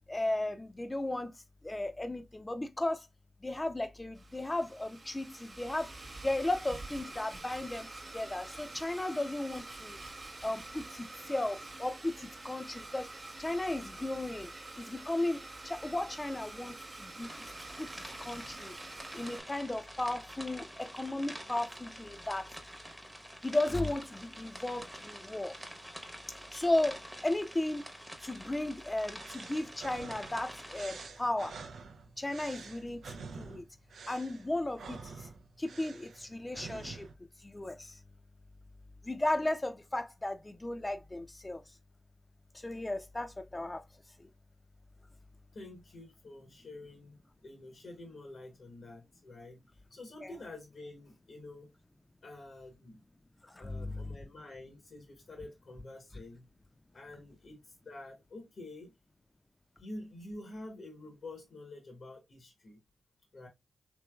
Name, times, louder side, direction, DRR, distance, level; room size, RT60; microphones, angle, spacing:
voice 1, 0.1-1.3 1.6-3.1 3.4-5.9 6.2-7.9 8.1-10.0 10.4-13.1 13.4-17.3 17.8-18.8 19.1-22.6 23.4-25.6 26.5-27.8 28.2-31.6 32.2-33.6 34.1-35.3 35.6-37.1 37.4-38.0 39.0-41.6 42.5-43.8 44.2-44.3 50.2-50.4 53.4-54.2, left 1 dB, 25° left, 0.6 m, -35 dB
Domestic sounds home sounds, 4.1-19.4, right 2 dB, 40° right, 0.7 m, -47 dB
sound 1, 17.2-31.1, equal, 5° right, 0.9 m, -48 dB
sound 2, 29.2-37.1, right 5 dB, 80° right, 0.4 m, -48 dB
voice 2, 45.5-49.6 49.9-51.7 52.2-53.0 53.5-56.5 56.9-58.9 59.8-62.8 63.3-63.5, left 2 dB, 70° left, 1.0 m, -48 dB
3.1 x 2.9 x 2.3 m
cardioid pair, 45°, 0 cm